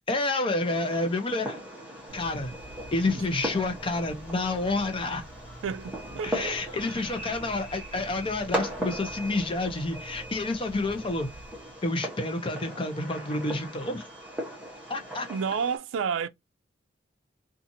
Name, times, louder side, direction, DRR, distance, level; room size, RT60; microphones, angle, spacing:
voice 1, 0.1-1.6 2.1-2.5 2.9-5.2 6.2-11.3 11.8-14.0 14.9-15.3, left 2 dB, 30° left, 0.6 m, -29 dB
Fireworks, 0.6-15.8, right 1 dB, 5° right, 0.9 m, -38 dB
Telephone, 2.1-11.8, right 1 dB, 70° left, 1.1 m, -47 dB
voice 2, 5.6-6.8 15.3-16.3, right 6 dB, 90° right, 0.3 m, -31 dB
2.7 x 2.4 x 2.6 m
head